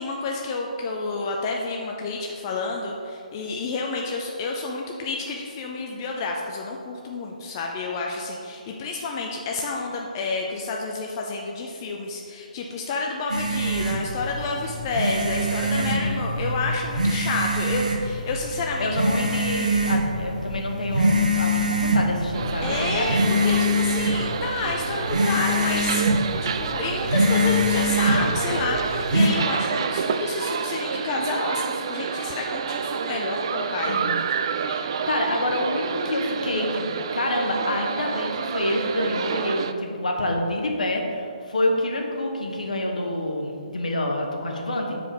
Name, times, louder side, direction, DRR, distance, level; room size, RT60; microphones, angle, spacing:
voice 1, 0.0-19.2 22.6-26.1 26.4-34.0, left 3 dB, 25° left, 0 dB, 0.5 m, -29 dB
Cell Phone Vibrate, 13.3-29.3, equal, 60° right, 1.2 m, -24 dB
voice 2, 15.7-16.2 18.8-23.3 33.9-34.2 34.7-45.0, left 1 dB, 60° left, 1 dB, 1.2 m, -27 dB
sound 1, 22.3-39.7, right 6 dB, 40° right, 0.3 m, -29 dB
7.3 x 5.0 x 5.1 m, 2.5 s
figure-of-eight pair, 140°, 4 cm